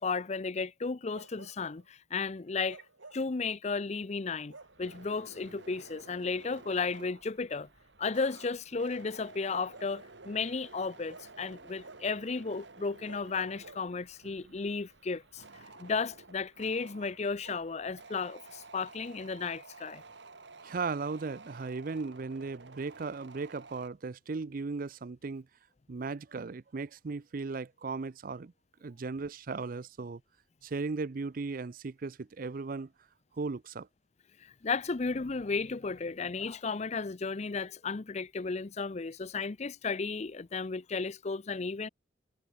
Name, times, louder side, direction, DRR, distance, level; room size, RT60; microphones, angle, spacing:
voice 1, 0.0-2.8 3.1-7.7 8.0-15.4 15.8-20.0 34.4-41.9, left 4 dB, 35° left, 0.5 m, -34 dB
Bark, 1.1-1.9 2.6-3.3 4.5-4.9 6.5-6.7 9.5-10.4 11.1-12.2 13.0-14.3 17.0-17.7, right 3 dB, 85° right, 3.9 m, -53 dB
sound 1, 4.6-23.9, right 3 dB, 65° right, 2.1 m, -53 dB
voice 2, 20.6-25.5 25.9-28.5 28.8-30.2 30.6-32.9 33.3-33.9, right 4 dB, 45° right, 0.5 m, -37 dB
head